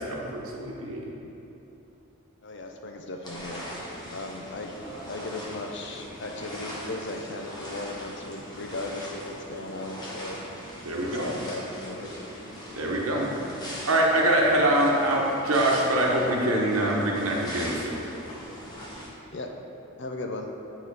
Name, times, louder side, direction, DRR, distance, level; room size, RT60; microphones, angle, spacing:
voice 1, 0.1-1.1 10.8-11.3 12.8-13.3 13.9-18.0, right 1 dB, 75° right, -2 dB, 1.2 m, -24 dB
voice 2, 2.4-3.6 4.1-4.7 5.1-10.4 11.0-12.1 19.3-19.5 20.0-20.5, left 2 dB, 55° left, 3 dB, 0.6 m, -37 dB
sound 1, 3.2-19.1, equal, 20° left, 1.1 m, -40 dB
9.3 x 3.9 x 4.8 m, 3.0 s
head